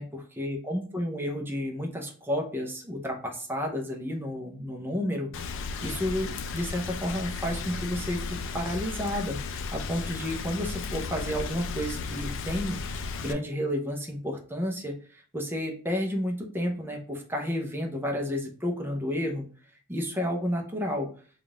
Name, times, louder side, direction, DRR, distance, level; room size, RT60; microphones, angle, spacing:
voice 1, 0.4-5.3 5.6-19.4 19.9-21.1, equal, 10° right, 2 dB, 0.6 m, -31 dB
Rain, 5.3-13.3, left 4 dB, 55° left, 0.4 m, -35 dB
3.6 x 2.4 x 3.7 m, 0.42 s
head